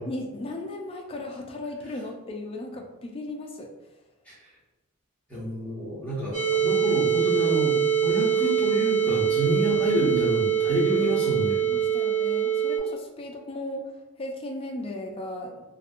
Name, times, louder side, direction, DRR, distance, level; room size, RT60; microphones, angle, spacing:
voice 1, 0.1-3.7 11.6-13.9 14.2-15.7, left 1 dB, 25° left, 2 dB, 0.3 m, -36 dB
voice 2, 5.3-11.6, equal, 5° left, -9 dB, 1.0 m, -28 dB
sound 1, 6.3-12.8, right 9 dB, 75° right, 0.8 m, -24 dB
2.6 x 2.5 x 2.4 m, 1.0 s
head